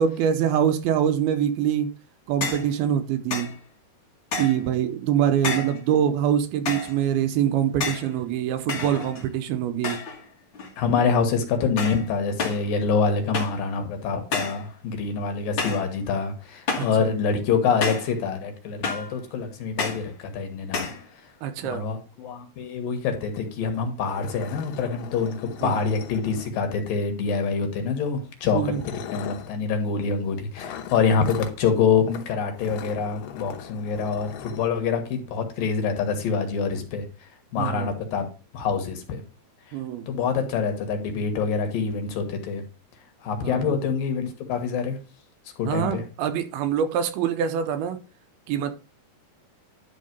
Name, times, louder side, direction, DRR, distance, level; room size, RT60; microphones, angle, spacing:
voice 1, 0.0-1.9 2.3-3.5 4.4-10.0 16.8-17.2 21.4-21.8 25.6-25.8 28.5-28.8 37.6-37.9 39.7-40.1 43.4-43.8 45.6-48.0 48.5-48.7, right 9 dB, 80° right, 2.7 m, -24 dB
sound 1, 2.4-2.7 3.3-3.6 4.3-4.7 5.4-5.8 6.6-7.0 7.8-8.1 8.7-9.3 9.8-10.2 10.5-11.0 11.8-12.1 12.4-12.7 13.3-13.6 14.3-14.6 15.6-15.9 16.7-17.0 17.8-18.1 18.8-19.1 19.8-20.1 20.7-21.0, left 4 dB, 45° left, 1.6 m, -29 dB
voice 2, 10.8-20.9 21.6-37.0 37.5-38.3 38.5-39.2 40.1-42.6 43.2-45.0 45.6-46.0, left 5 dB, 70° left, 2.9 m, -26 dB
sound 2, 23.3-23.4 23.7-23.8 24.1-26.8 27.8-28.0 28.6-29.5 30.6-31.6 32.1-32.3 32.6-34.7, left 9 dB, 85° left, 3.0 m, -39 dB
11.0 x 3.7 x 5.2 m
omnidirectional pair, 4.5 m